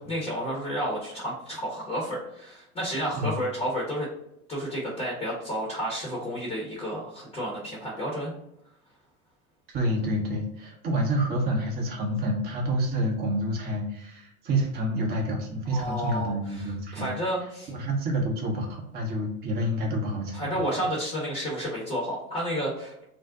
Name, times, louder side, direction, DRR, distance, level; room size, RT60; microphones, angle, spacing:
voice 1, 0.0-4.1 4.5-8.3 15.7-17.7 20.3-22.9, equal, 15° left, -5 dB, 0.8 m, -31 dB
voice 2, 9.7-17.1 17.7-20.4, equal, 25° right, 0 dB, 0.6 m, -28 dB
2.6 x 2.0 x 3.5 m, 0.80 s
hypercardioid pair, 100°, 43 cm